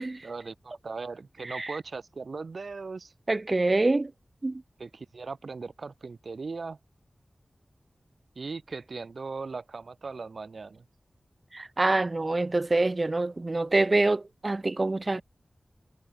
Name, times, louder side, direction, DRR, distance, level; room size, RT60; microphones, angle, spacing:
voice 1, 0.2-3.1 4.8-6.8 8.3-10.8, right 4 dB, 70° right, 5.0 m, -38 dB
voice 2, 1.4-1.8 3.3-4.1 4.4-4.6 11.5-15.2, right 2 dB, 35° right, 0.7 m, -26 dB
wide cardioid pair, 90°, 0 cm